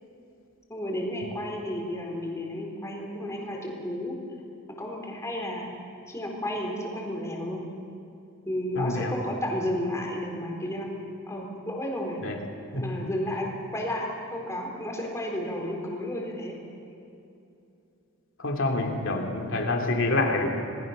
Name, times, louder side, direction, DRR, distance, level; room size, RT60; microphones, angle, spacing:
voice 1, 0.7-4.1 4.8-5.7 6.1-7.6 8.5-10.9 11.3-12.2 12.7-14.1 14.3-16.6, left 1 dB, 15° left, -1 dB, 4.1 m, -32 dB
voice 2, 8.8-9.2 12.2-12.4 12.7-13.0 18.4-20.5, left 2 dB, 60° left, 2 dB, 2.9 m, -27 dB
27.0 x 20.0 x 6.7 m, 2.7 s
head